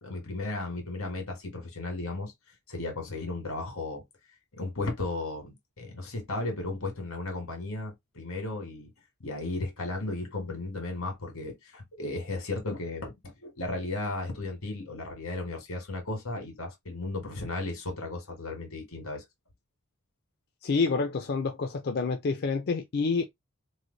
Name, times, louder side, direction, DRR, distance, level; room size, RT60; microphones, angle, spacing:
voice 1, 0.0-2.3 2.7-4.0 4.5-8.9 9.2-19.2, left 2 dB, 85° left, 1.6 m, -35 dB
voice 2, 20.6-23.2, left 4 dB, 50° left, 0.4 m, -28 dB
3.2 x 2.2 x 3.8 m
head